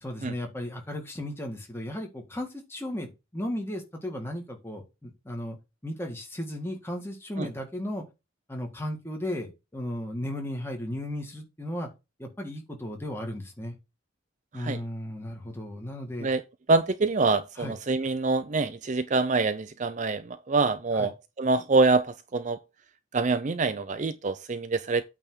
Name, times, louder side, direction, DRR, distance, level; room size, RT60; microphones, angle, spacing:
voice 1, 0.0-5.6 5.8-8.0 8.5-11.9 12.2-13.8 14.5-16.3 17.6-17.8 20.9-21.1, left 1 dB, 10° left, 1.8 m, -35 dB
voice 2, 16.7-22.6 23.1-25.0, right 3 dB, 35° right, 0.4 m, -25 dB
8.7 x 3.5 x 6.2 m
head